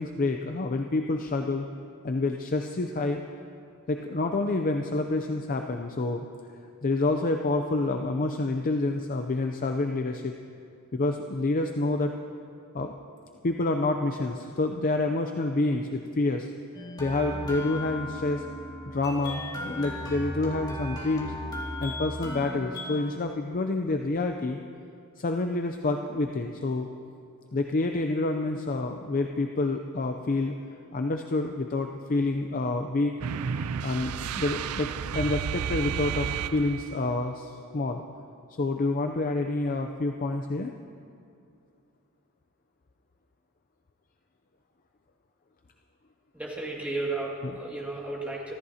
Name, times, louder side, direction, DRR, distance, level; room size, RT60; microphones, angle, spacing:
voice 1, 0.0-1.7 2.0-3.2 3.9-6.2 6.8-10.3 10.9-12.1 12.7-12.9 13.4-16.5 17.0-18.4 18.9-21.3 21.8-24.6 25.2-26.9 27.5-30.5 30.9-33.1 33.8-36.3 36.5-38.0 38.6-40.7 47.4-47.6, left 2 dB, 40° left, 5 dB, 0.5 m, -28 dB
sound 1, 16.7-23.0, left 1 dB, 20° left, 2.0 m, -36 dB
Danskanaal (Geluid), 33.2-37.1, right 7 dB, 85° right, 0.4 m, -32 dB
voice 2, 46.3-48.5, right 2 dB, 5° right, -4 dB, 2.3 m, -33 dB
25.0 x 14.0 x 2.8 m, 2.5 s
head